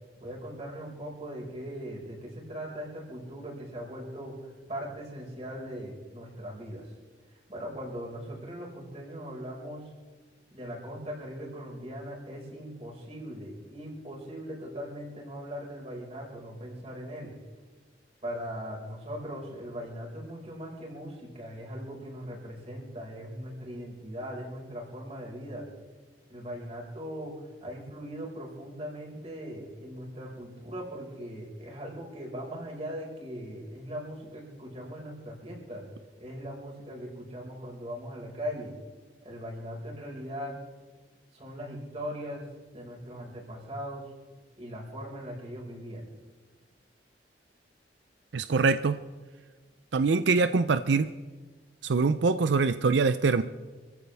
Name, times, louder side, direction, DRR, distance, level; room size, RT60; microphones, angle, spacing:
voice 1, 0.2-6.9 7.3-9.9 10.5-17.3 18.2-25.7 26.3-35.8 36.2-38.7 39.2-40.6 41.3-42.5 42.7-44.1 44.6-46.1, equal, 35° right, -2 dB, 5.2 m, -40 dB
voice 2, 48.3-49.0 49.9-51.1 51.8-53.4, right 4 dB, 90° right, 11 dB, 0.5 m, -24 dB
27.0 x 15.5 x 3.5 m, 1.4 s
head